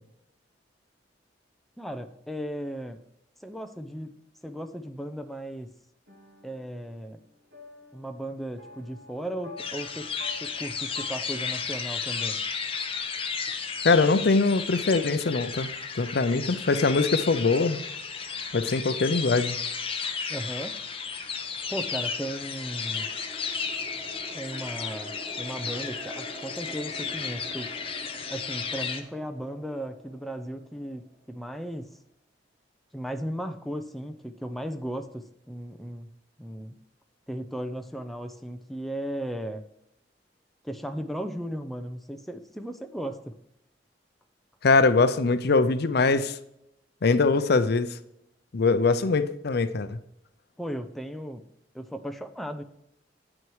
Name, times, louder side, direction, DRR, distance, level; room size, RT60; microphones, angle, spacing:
voice 1, 1.8-3.0 3.4-4.1 4.4-5.7 6.4-7.2 7.9-10.1 10.4-12.4 20.3-20.8 21.7-23.1 24.3-27.8 28.3-32.0 32.9-36.1 36.4-36.8 37.3-39.7 40.6-43.4 50.6-51.5 51.7-52.6, equal, ahead, 0.5 m, -36 dB
sound 1, 6.1-13.0, left 2 dB, 75° right, 3.0 m, -49 dB
sound 2, 9.6-29.0, left 6 dB, 30° left, 0.9 m, -33 dB
voice 2, 13.8-15.7 16.0-17.8 18.5-19.6 44.6-46.4 47.0-48.0 48.5-50.0, left 3 dB, 60° left, 0.6 m, -22 dB
sound 3, 21.2-31.6, right 1 dB, 35° right, 1.6 m, -46 dB
9.0 x 6.2 x 4.7 m
head